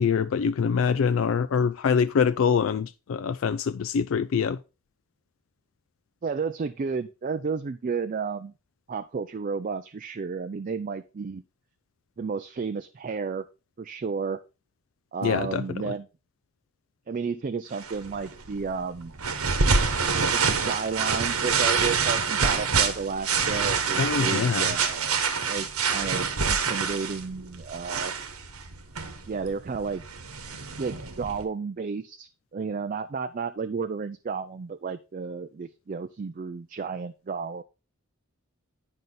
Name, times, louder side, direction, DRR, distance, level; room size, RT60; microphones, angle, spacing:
voice 1, 0.0-4.6 15.2-15.9 24.0-24.7, left 6 dB, 65° left, 0.3 m, -24 dB
voice 2, 6.2-8.5 8.9-11.4 12.2-13.4 13.8-14.4 15.1-16.1 17.1-19.1 20.3-25.2 25.5-28.1 29.3-30.0 30.8-37.6, right 5 dB, 35° right, 0.3 m, -32 dB
sound 1, 17.8-31.4, right 5 dB, 80° right, 1.2 m, -27 dB
9.3 x 5.4 x 3.8 m
head